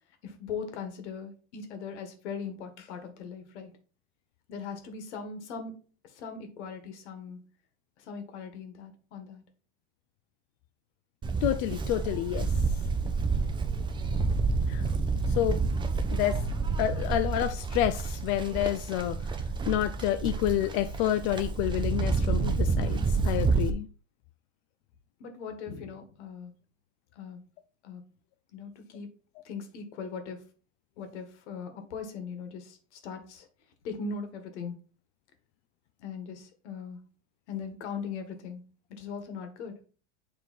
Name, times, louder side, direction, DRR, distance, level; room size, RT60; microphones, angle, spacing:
voice 1, 0.2-3.8 4.5-5.8 6.0-7.4 8.0-9.4 25.2-26.5 27.2-27.4 27.8-28.0 28.5-29.1 29.4-30.5 31.0-33.5 33.8-34.8 36.0-37.0 37.5-38.6 38.9-39.7, left 5 dB, 70° left, 1.9 m, -39 dB
Livestock farm animals working animals, 11.2-23.7, right 4 dB, 15° right, 0.6 m, -29 dB
voice 2, 11.4-12.5 14.7-14.8 15.3-15.6 16.1-16.4 16.8-19.2 19.7-23.9, left 12 dB, 50° left, 0.5 m, -29 dB
7.4 x 3.7 x 4.4 m
supercardioid pair, 125°, 35 cm